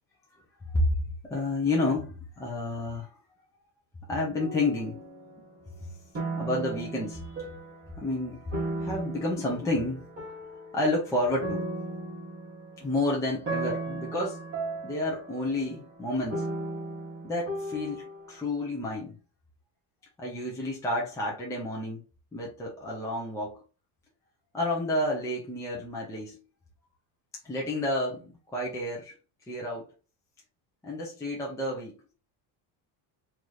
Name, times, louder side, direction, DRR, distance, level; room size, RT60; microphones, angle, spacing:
voice 1, 1.2-3.2 4.1-5.0 6.4-7.3 8.0-10.1 10.7-11.7 12.8-14.4 14.8-16.5 17.2-19.1 20.2-22.0 22.3-23.6 24.5-26.4 27.4-29.2 29.5-29.9 30.8-32.0, left 1 dB, 5° left, 0.7 m, -30 dB
sound 1, 4.4-5.8 6.1-7.9 8.5-18.3, right 2 dB, 30° right, 1.5 m, -36 dB
3.2 x 3.0 x 3.9 m
cardioid pair, 170°, 48 cm